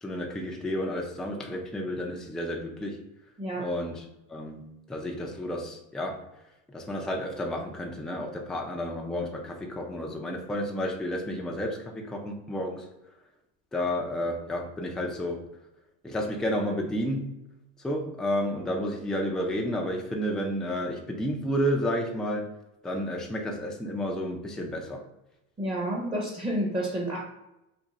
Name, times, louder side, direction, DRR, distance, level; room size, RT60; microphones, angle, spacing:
voice 1, 0.0-3.0 3.6-6.2 6.7-12.9 13.7-15.5 16.0-17.4 17.8-22.4 22.8-25.0, equal, ahead, 0 dB, 0.3 m, -31 dB
voice 2, 3.4-3.7 25.6-27.2, right 1 dB, 20° right, -1 dB, 0.7 m, -30 dB
2.6 x 2.5 x 3.9 m, 0.92 s
cardioid pair, 130°, 30 cm